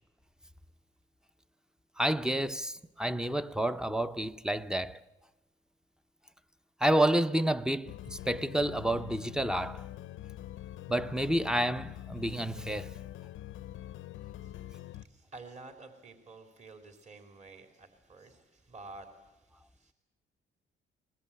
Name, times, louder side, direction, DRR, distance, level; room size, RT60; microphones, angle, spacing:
voice 1, 2.0-5.0 6.8-9.9 10.9-12.9, right 1 dB, 5° right, 0.8 m, -29 dB
sound 1, 7.9-15.1, left 13 dB, 80° left, 0.8 m, -44 dB
voice 2, 14.4-19.9, right 3 dB, 35° right, 3.2 m, -51 dB
22.0 x 21.0 x 8.6 m
cardioid pair, 90°, 20 cm